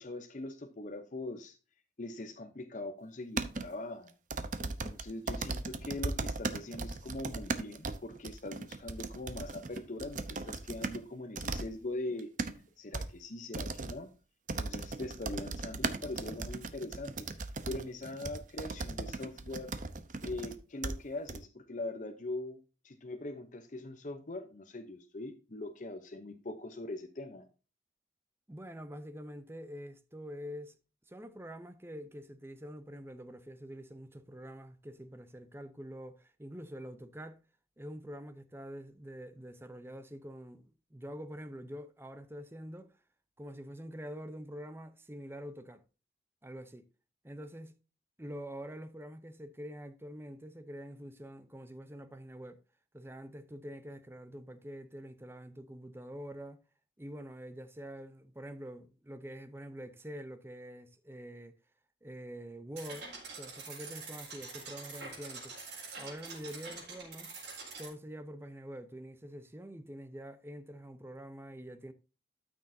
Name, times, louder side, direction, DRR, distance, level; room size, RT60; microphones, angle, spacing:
voice 1, 0.0-1.6 2.0-4.1 4.6-12.3 12.8-14.1 14.5-17.3 17.7-19.7 20.2-22.6 22.8-27.5, left 2 dB, 45° left, 0.8 m, -42 dB
sound 1, 3.4-3.7 4.3-11.0 11.4-11.7 12.1-12.5 12.9-13.1 13.5-13.9 14.5-20.6 20.8-20.9 21.3-21.4, right 3 dB, 45° right, 0.8 m, -37 dB
voice 2, 28.5-30.7 31.1-37.4 37.8-43.0 43.4-45.8 46.4-46.9 47.2-47.7 48.2-52.6 52.9-56.6 57.0-61.6 62.0-63.1 63.4-65.5 66.0-67.3 67.8-71.9, equal, 15° right, 0.6 m, -46 dB
sound 2, 62.8-67.9, right 4 dB, 75° right, 4.1 m, -45 dB
13.0 x 6.2 x 2.7 m
head